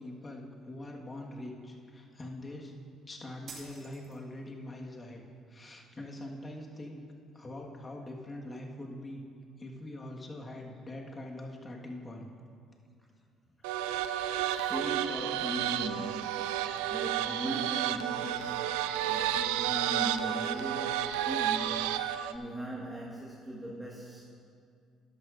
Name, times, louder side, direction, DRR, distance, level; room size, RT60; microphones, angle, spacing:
voice 1, 0.0-2.7 3.1-5.2 5.5-7.0 7.3-9.2 9.6-12.3, left 1 dB, 30° left, 0 dB, 1.7 m, -43 dB
sound 1, 3.5-4.5, right 4 dB, 55° right, 2.2 m, -48 dB
sound 2, 13.6-22.4, right 11 dB, 85° right, 0.3 m, -31 dB
voice 2, 14.4-16.5 16.9-24.2, right 1 dB, 5° right, -4 dB, 1.6 m, -39 dB
13.0 x 11.0 x 2.6 m, 2.3 s
hypercardioid pair, 60°, 0 cm